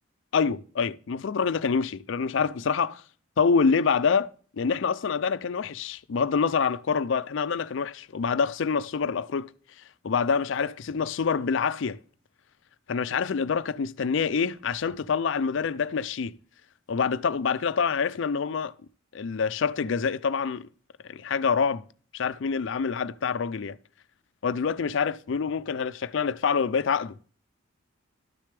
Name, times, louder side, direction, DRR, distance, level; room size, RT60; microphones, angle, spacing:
voice 1, 0.3-3.0 3.4-9.5 10.0-12.0 12.9-16.4 16.9-18.7 19.1-20.7 21.0-21.8 22.1-23.8 24.4-27.1, left 5 dB, 65° left, 0.4 m, -26 dB
12.5 x 6.5 x 3.3 m
head